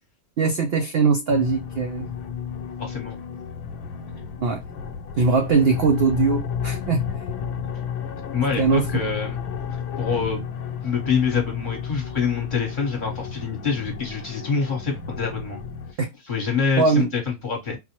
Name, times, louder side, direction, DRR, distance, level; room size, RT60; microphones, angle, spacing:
voice 1, 0.4-2.1 4.4-4.6 5.2-7.0 8.6-8.9 16.0-16.1 16.8-17.1, right 4 dB, 65° right, 0.6 m, -21 dB
sound 1, 1.3-15.9, left 7 dB, 90° left, 1.1 m, -32 dB
voice 2, 2.8-3.2 8.3-9.4 10.0-10.4 10.8-15.6 16.3-17.8, left 5 dB, 35° left, 1.1 m, -25 dB
4.1 x 2.0 x 2.8 m
omnidirectional pair, 1.5 m